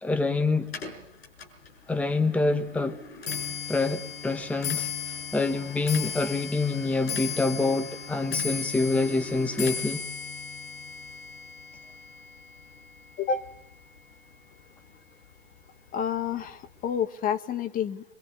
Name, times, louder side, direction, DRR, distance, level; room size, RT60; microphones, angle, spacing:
voice 1, 0.0-0.7 1.9-3.0 3.7-4.9 5.3-10.0, left 3 dB, 5° left, 1.1 m, -26 dB
Clock, 0.7-14.0 14.3-14.8 15.6-15.7 16.0-16.4 16.7-16.8, left 6 dB, 70° left, 6.0 m, -36 dB
voice 2, 15.9-18.0, left 7 dB, 25° left, 1.4 m, -29 dB
24.5 x 23.5 x 8.3 m
figure-of-eight pair, 100°, 31 cm